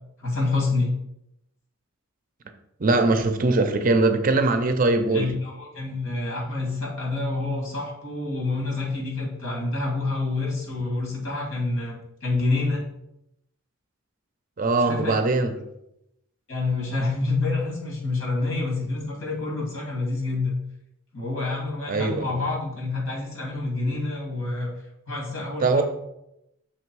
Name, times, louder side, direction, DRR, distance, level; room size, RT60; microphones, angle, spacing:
voice 1, 0.2-0.9 5.1-12.9 14.9-15.2 16.5-20.6 21.1-24.7 25.1-25.8, left 3 dB, 70° left, -2 dB, 2.2 m, -27 dB
voice 2, 2.8-5.3 14.6-15.5 21.9-22.5 25.6-25.8, right 3 dB, 40° right, 7 dB, 0.5 m, -21 dB
5.8 x 3.5 x 4.7 m, 0.82 s
head